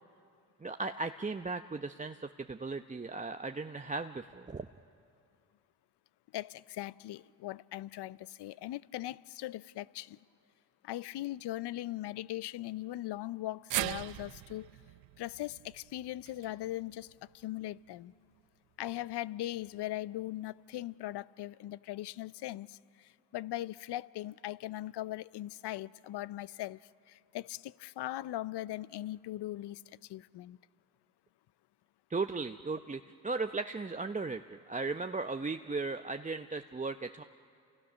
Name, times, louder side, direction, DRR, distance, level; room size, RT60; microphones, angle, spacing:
voice 1, 0.6-4.7 32.1-37.2, right 3 dB, 15° right, 0.8 m, -37 dB
voice 2, 6.3-10.2 10.8-14.7 15.2-18.1 18.8-30.6, left 15 dB, 60° left, 0.7 m, -40 dB
sound 1, 13.7-18.0 18.3-18.4 19.6-19.7, right 18 dB, 70° right, 0.6 m, -41 dB
30.0 x 28.5 x 6.3 m
supercardioid pair, 55°, 45 cm